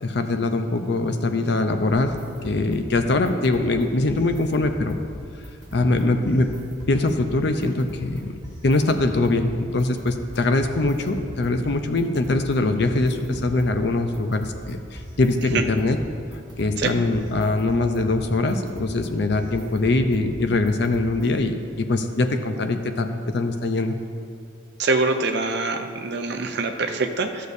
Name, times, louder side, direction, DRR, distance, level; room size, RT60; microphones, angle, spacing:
voice 1, 0.0-2.1 2.4-5.0 5.7-6.5 6.9-8.3 8.6-16.0 16.6-23.9, left 2 dB, 55° left, 7 dB, 0.5 m, -22 dB
sound 1, 1.9-21.5, equal, 20° right, 1.0 m, -40 dB
voice 2, 24.8-27.5, right 3 dB, 55° right, 5 dB, 0.5 m, -24 dB
12.5 x 6.6 x 2.7 m, 2.3 s
head